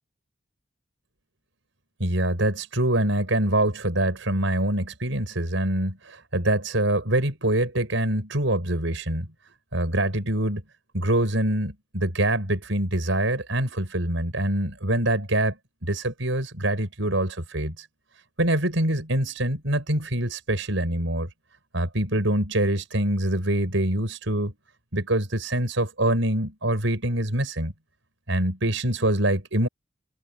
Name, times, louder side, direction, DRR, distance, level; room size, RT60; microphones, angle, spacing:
voice 1, 2.0-9.3 9.7-10.6 10.9-17.9 18.4-21.3 21.7-24.5 24.9-27.7 28.3-29.7, right 1 dB, 75° right, 6.5 m, -25 dB
head